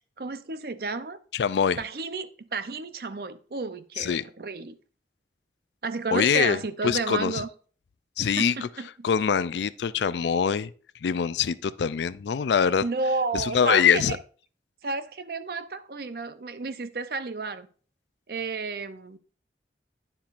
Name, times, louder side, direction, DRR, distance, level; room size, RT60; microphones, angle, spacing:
voice 1, 0.2-1.2 1.8-4.8 5.8-7.5 8.4-9.1 12.8-14.2 14.8-17.7 18.3-19.2, right 3 dB, 55° right, 0.6 m, -32 dB
voice 2, 1.3-1.8 4.0-4.2 6.1-6.6 6.8-7.4 8.2-8.5 9.0-10.7 11.0-12.8 13.3-14.2, left 7 dB, 80° left, 0.4 m, -23 dB
9.4 x 7.2 x 2.5 m
head